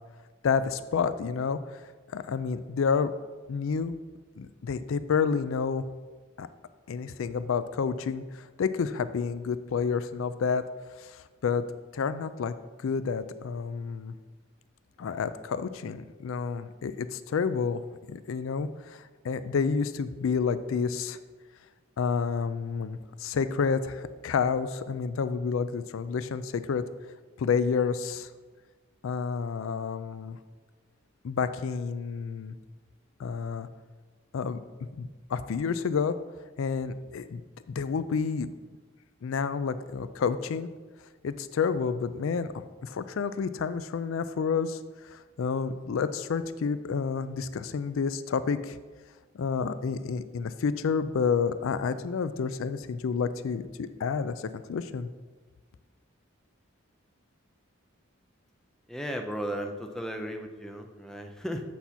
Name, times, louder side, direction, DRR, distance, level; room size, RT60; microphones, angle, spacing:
voice 1, 0.4-1.8 2.1-3.1 3.5-4.0 4.4-5.8 6.4-6.5 6.9-10.6 11.0-11.6 11.9-12.5 12.8-14.1 15.0-17.8 18.1-21.2 22.0-26.8 27.4-28.3 29.0-30.4 31.2-32.6 33.2-33.7 34.3-34.6 35.0-36.2 36.6-37.4 37.7-38.5 39.2-40.7 41.2-42.5 42.8-48.8 49.3-55.1, left 5 dB, 75° left, 13 dB, 0.4 m, -29 dB
voice 2, 58.9-61.6, equal, ahead, 4 dB, 0.5 m, -35 dB
8.2 x 4.2 x 5.6 m, 1.3 s
head